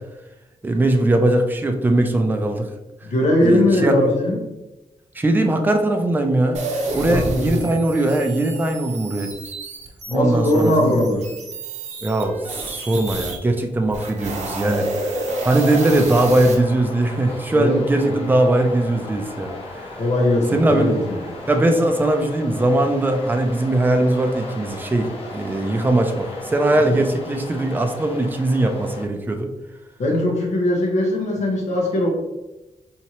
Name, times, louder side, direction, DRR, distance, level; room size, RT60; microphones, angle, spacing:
voice 1, 0.6-2.7 3.4-4.0 5.1-6.6 6.9-9.3 10.1-10.9 12.0-12.4 12.6-20.0 20.5-20.9 21.4-29.5, right 1 dB, 15° right, 4 dB, 0.4 m, -20 dB
voice 2, 3.0-4.4 7.1-7.8 10.1-11.3 17.5-18.2 20.0-21.3 26.8-27.0 30.0-32.1, left 1 dB, 85° left, 0 dB, 1.0 m, -20 dB
sound 1, 6.5-13.4 13.8-16.5, right 2 dB, 90° right, 0.8 m, -30 dB
sound 2, 15.3-29.1, left 1 dB, 55° left, 1.1 m, -36 dB
4.3 x 2.8 x 2.9 m, 1.0 s
wide cardioid pair, 135°, 12 cm